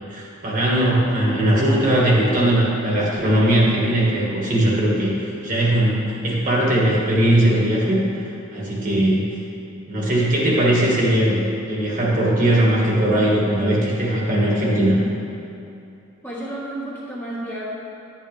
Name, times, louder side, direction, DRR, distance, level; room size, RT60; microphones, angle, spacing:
voice 1, 0.1-9.2 9.9-11.4 11.6-15.0, right 1 dB, 40° right, -4 dB, 1.7 m, -19 dB
voice 2, 16.2-17.7, right 1 dB, 10° left, -8 dB, 1.6 m, -31 dB
11.5 x 8.8 x 3.4 m, 2.8 s
head